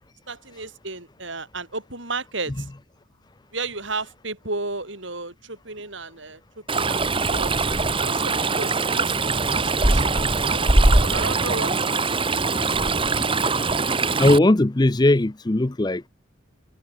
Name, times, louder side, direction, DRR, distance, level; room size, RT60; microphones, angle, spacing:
voice 1, 0.3-2.7 3.5-7.5 8.0-12.2, right 3 dB, 65° right, 7.2 m, -34 dB
Stream, 6.7-14.4, right 3 dB, 25° right, 1.8 m, -21 dB
voice 2, 14.2-16.1, left 1 dB, 20° left, 0.6 m, -18 dB
head